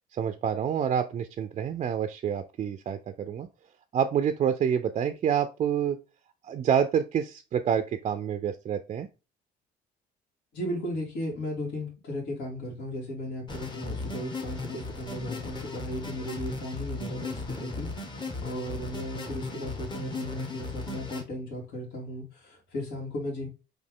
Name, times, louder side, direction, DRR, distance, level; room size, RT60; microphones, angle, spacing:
voice 1, 0.1-3.5 3.9-6.0 6.4-9.1, right 8 dB, 40° right, 8 dB, 0.4 m, -27 dB
voice 2, 10.5-23.5, left 1 dB, 75° left, -4 dB, 1.9 m, -36 dB
sound 1, 13.5-21.2, left 3 dB, 30° left, 1.0 m, -36 dB
4.3 x 2.7 x 3.6 m, 0.29 s
cardioid pair, 110°, 17 cm